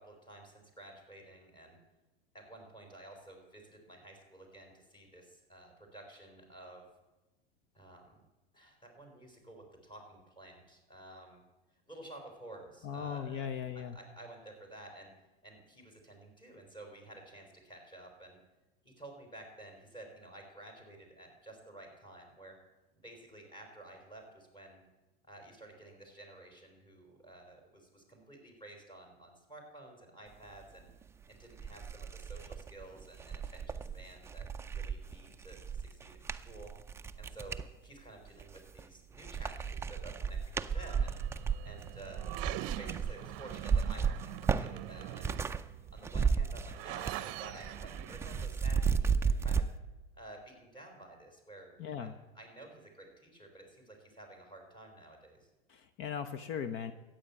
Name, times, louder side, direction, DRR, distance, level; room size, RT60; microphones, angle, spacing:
voice 1, 0.0-1.8 2.3-6.9 7.7-8.2 8.5-11.4 11.9-13.5 13.7-15.1 15.4-18.4 18.8-22.6 23.0-24.8 25.2-30.9 31.3-36.7 37.2-41.2 41.6-45.3 45.9-49.7 50.1-55.5, right 1 dB, 15° left, 3 dB, 4.2 m, -52 dB
voice 2, 12.8-14.0 51.8-52.1 55.7-56.9, left 8 dB, 45° left, 11 dB, 0.8 m, -38 dB
sound 1, 31.0-31.1 31.5-37.7 38.3-38.9 39.2-45.6 45.9-47.3 47.5-49.7, right 6 dB, 10° right, 0.4 m, -34 dB
sound 2, 40.7-48.5, right 17 dB, 55° right, 0.7 m, -44 dB
13.5 x 9.1 x 8.3 m, 1.1 s
hypercardioid pair, 115°, 30 cm